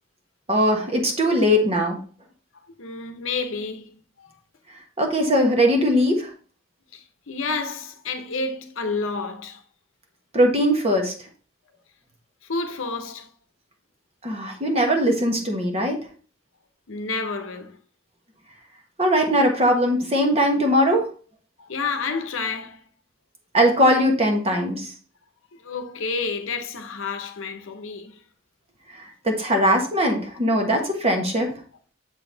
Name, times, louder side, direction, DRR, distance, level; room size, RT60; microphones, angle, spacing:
voice 1, 0.5-2.0 5.0-6.3 10.3-11.1 14.2-16.0 19.0-21.1 23.5-24.9 29.2-31.5, equal, 30° right, 1.3 m, -20 dB
voice 2, 2.8-3.9 4.2-4.3 6.9-9.6 12.5-13.3 16.9-17.8 21.6-22.8 25.5-28.2, left 4 dB, 70° left, 0.8 m, -30 dB
7.4 x 4.0 x 3.9 m
head